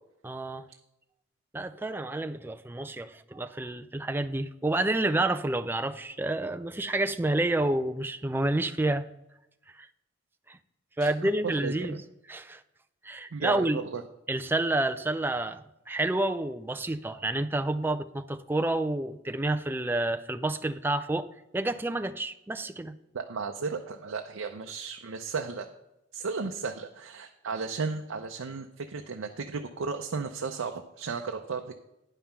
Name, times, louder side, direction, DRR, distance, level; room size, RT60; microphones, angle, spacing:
voice 1, 0.2-0.6 1.5-9.1 9.8-9.9 10.5-10.6 11.0-12.0 12.3-12.6 13.0-13.8 14.3-21.3 21.5-22.9, right 2 dB, 10° right, 0.3 m, -29 dB
voice 2, 11.4-12.0 13.3-14.0 23.1-25.7 26.1-31.8, right 4 dB, 85° right, 0.6 m, -34 dB
9.9 x 5.6 x 5.8 m
head